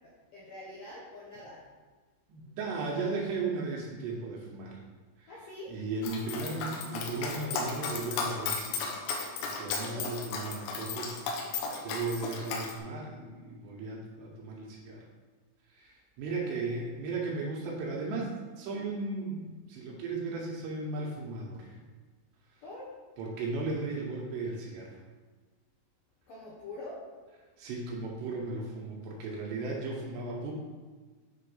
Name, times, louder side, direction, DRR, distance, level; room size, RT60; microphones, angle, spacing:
voice 1, 0.0-1.6 5.3-5.7 9.8-10.2 16.4-16.8 22.6-22.9 26.3-27.0, left 2 dB, 75° left, -7 dB, 2.0 m, -45 dB
voice 2, 2.3-4.8 5.2-5.3 5.7-8.9 9.4-15.0 15.7-21.8 22.5-22.6 23.2-24.9 27.6-30.5, right 3 dB, 75° right, -1 dB, 2.8 m, -36 dB
Dog, 6.0-12.7, left 4 dB, 90° left, 3.5 m, -35 dB
8.4 x 3.8 x 5.5 m, 1.4 s
omnidirectional pair, 5.6 m